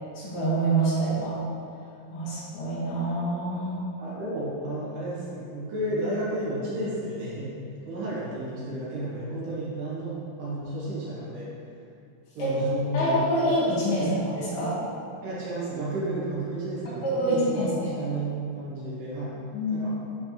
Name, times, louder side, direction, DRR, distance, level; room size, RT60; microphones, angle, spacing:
voice 1, 0.1-1.4 2.1-3.8 12.4-12.5 12.9-14.8 17.0-17.9 19.5-20.2, right 1 dB, 65° left, -9 dB, 3.2 m, -26 dB
voice 2, 4.0-7.5 7.8-11.5 12.4-13.2 14.0-14.2 15.2-19.3 19.7-19.9, right 1 dB, 75° right, -9 dB, 3.7 m, -32 dB
10.0 x 4.3 x 3.0 m, 2.5 s
omnidirectional pair, 5.0 m